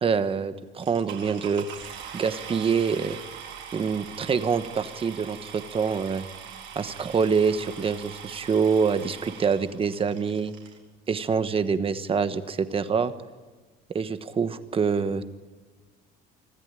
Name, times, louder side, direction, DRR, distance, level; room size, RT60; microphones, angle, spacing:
voice 1, 0.0-3.2 3.7-6.2 6.7-10.5 11.1-13.1 13.9-15.2, right 6 dB, 25° right, 11 dB, 1.2 m, -26 dB
sound 1, 0.8-10.8 11.6-11.7 12.2-12.3 12.5-12.8, right 8 dB, 65° right, 4.2 m, -42 dB
25.5 x 14.5 x 9.1 m, 1.3 s
cardioid pair, 145°, 21 cm